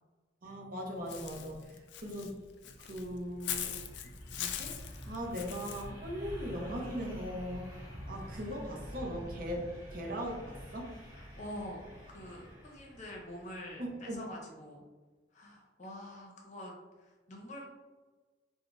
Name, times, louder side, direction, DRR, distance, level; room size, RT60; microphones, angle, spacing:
voice 1, 0.4-2.3 2.8-3.8 4.4-7.6 8.1-11.0 13.8-14.2, equal, 45° right, 0 dB, 0.6 m, -39 dB
Walk footsteps / Bird, 1.1-5.9, left 9 dB, 65° left, 0.3 m, -41 dB
snowmobiles pull away far, 2.5-14.2, equal, 15° right, 1.0 m, -48 dB
voice 2, 11.1-11.9 12.1-14.8 15.3-17.6, left 1 dB, 40° left, -1 dB, 0.7 m, -46 dB
3.7 x 2.1 x 3.0 m, 1.3 s
head